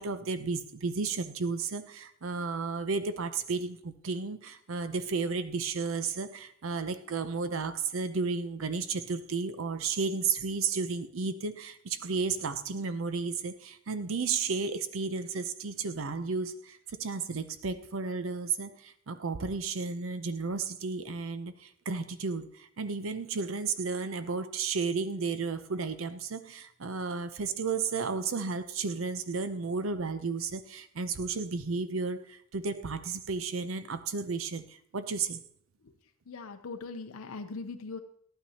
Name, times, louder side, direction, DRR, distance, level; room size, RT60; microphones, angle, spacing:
voice 1, 0.0-35.4, right 4 dB, 70° right, 11 dB, 0.6 m, -33 dB
voice 2, 36.3-38.0, left 4 dB, 85° left, 7 dB, 0.6 m, -40 dB
11.5 x 9.0 x 2.8 m, 0.65 s
head